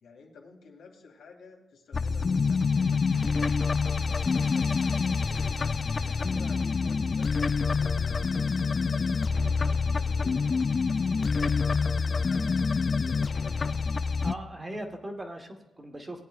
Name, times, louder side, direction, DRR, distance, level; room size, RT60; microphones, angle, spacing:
voice 1, 0.0-7.4 7.8-10.7 11.0-13.9, left 4 dB, 80° left, 2 dB, 2.6 m, -52 dB
sound 1, 1.9-14.3, left 5 dB, 30° left, 0.3 m, -26 dB
voice 2, 14.2-16.2, right 1 dB, 20° right, 3 dB, 1.4 m, -39 dB
19.0 x 10.0 x 2.5 m, 1.0 s
wide cardioid pair, 160°, 0 cm